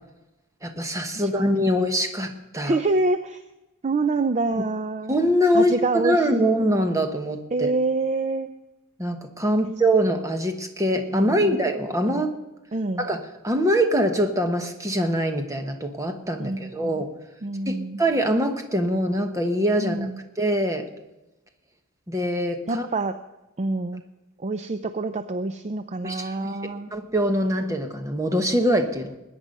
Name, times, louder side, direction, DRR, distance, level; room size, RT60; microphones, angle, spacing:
voice 1, 0.6-2.8 4.5-4.6 5.1-7.7 9.0-12.3 13.0-13.2 13.4-17.1 17.7-20.1 20.4-20.9 22.1-22.9 26.0-26.5 26.9-29.1, equal, 15° right, 5 dB, 1.2 m, -23 dB
voice 2, 2.6-3.4 3.8-5.2 5.5-6.5 7.5-8.5 11.2-11.5 12.0-12.3 12.7-13.1 16.4-17.0 17.4-18.0 19.8-20.2 22.7-23.2 23.6-24.0 24.4-26.9, right 3 dB, 30° right, 10 dB, 0.5 m, -26 dB
20.5 x 9.5 x 5.4 m, 1.0 s
head